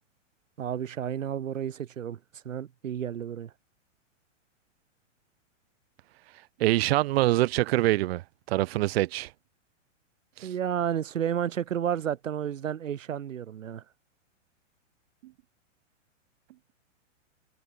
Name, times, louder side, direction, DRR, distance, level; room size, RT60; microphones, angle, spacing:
voice 1, 0.6-2.2 2.4-3.5 10.4-13.8, right 9 dB, 80° right, 3.4 m, -31 dB
voice 2, 6.6-8.2 8.5-9.3 10.4-10.5, right 17 dB, 50° right, 1.2 m, -24 dB
hypercardioid pair, 135°, 38 cm